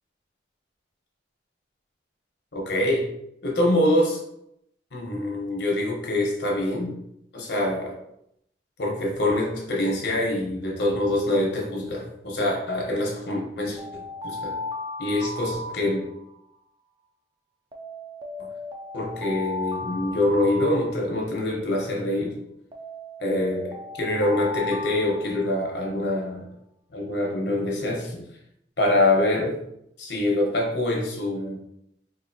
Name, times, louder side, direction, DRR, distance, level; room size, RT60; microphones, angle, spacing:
voice 1, 2.5-3.0 3.4-4.2 4.9-7.0 7.3-7.9 8.8-14.5 15.0-16.0 18.9-22.4 23.2-26.5 26.9-28.2 28.8-29.6 30.0-31.6, left 1 dB, 70° left, -1 dB, 1.0 m, -25 dB
Alarm, 13.8-16.4 17.7-21.4 22.7-25.9, left 2 dB, 25° right, 0.4 m, -36 dB
4.1 x 2.7 x 2.7 m, 0.78 s
head